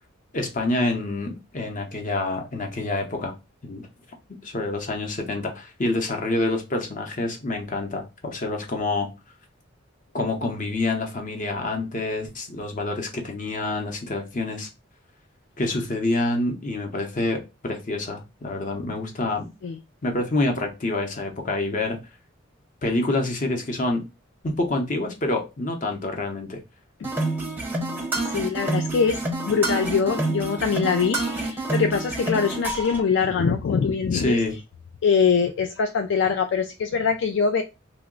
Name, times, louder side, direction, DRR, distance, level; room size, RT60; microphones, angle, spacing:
voice 1, 0.3-3.3 3.6-3.9 4.4-9.1 10.1-14.7 15.6-19.5 20.0-22.0 22.8-24.1 24.4-26.6 34.1-34.6, left 2 dB, 40° left, 0.7 m, -27 dB
sound 1, 27.0-33.0, right 2 dB, 10° right, 0.6 m, -28 dB
voice 2, 28.3-29.2 29.5-34.4 35.0-37.6, left 6 dB, 60° left, 0.3 m, -23 dB
2.9 x 2.1 x 3.7 m
head